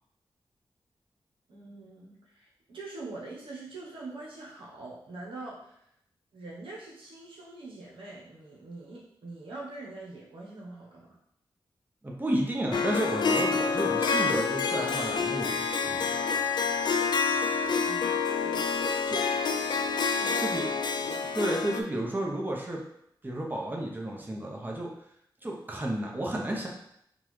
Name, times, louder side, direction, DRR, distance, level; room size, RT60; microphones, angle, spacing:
voice 1, 1.5-5.8 6.3-11.2 17.8-19.1 20.2-20.6 20.9-21.4, right 2 dB, 85° right, -4 dB, 0.9 m, -44 dB
voice 2, 12.0-16.3 19.1-19.2 20.4-20.7 21.3-22.8 23.2-24.9 25.4-26.7, right 1 dB, 20° right, -1 dB, 0.8 m, -32 dB
Harp, 12.7-21.8, left 5 dB, 55° left, 0.3 m, -28 dB
3.8 x 2.3 x 3.1 m, 0.72 s
cardioid pair, 55°, 9 cm